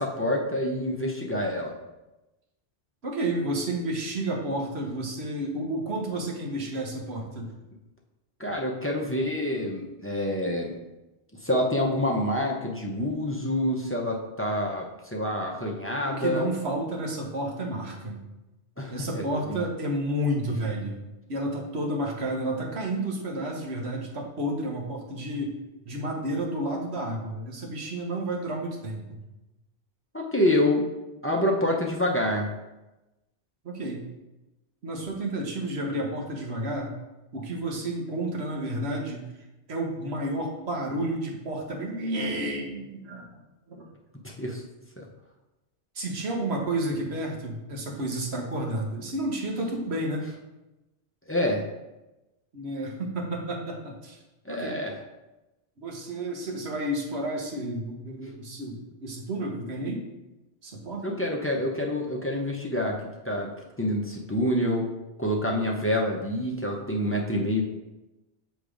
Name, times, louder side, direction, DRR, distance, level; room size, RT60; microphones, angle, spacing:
voice 1, 0.0-1.7 8.4-10.7 11.4-16.5 18.8-19.7 30.1-30.9 31.2-32.5 44.2-44.6 45.0-45.1 51.3-51.6 54.5-55.0 61.0-63.5 63.8-64.9 65.2-67.6, left 1 dB, 15° left, 0 dB, 0.5 m, -27 dB
voice 2, 3.0-7.5 16.0-18.2 18.9-21.0 21.3-25.6 25.8-29.2 33.6-34.0 34.8-36.9 37.3-39.3 39.7-43.4 43.7-43.9 45.9-50.2 52.5-54.2 54.5-54.8 55.8-60.0 60.6-61.2, right 1 dB, 70° right, 0 dB, 1.3 m, -31 dB
6.7 x 3.1 x 4.9 m, 1.0 s
omnidirectional pair, 1.1 m